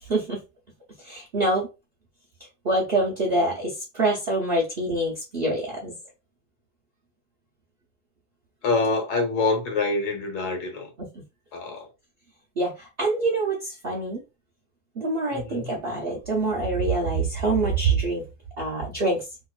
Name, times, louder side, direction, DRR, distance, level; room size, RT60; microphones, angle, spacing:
voice 1, 0.0-0.4 1.0-1.7 2.6-5.9 11.0-11.1 12.6-14.2 15.0-18.3 18.6-19.3, right 2 dB, 70° right, 0.5 m, -25 dB
voice 2, 8.6-10.9 11.5-11.9 15.3-15.7, left 3 dB, 90° left, 1.8 m, -26 dB
3.3 x 2.9 x 2.3 m
omnidirectional pair, 2.1 m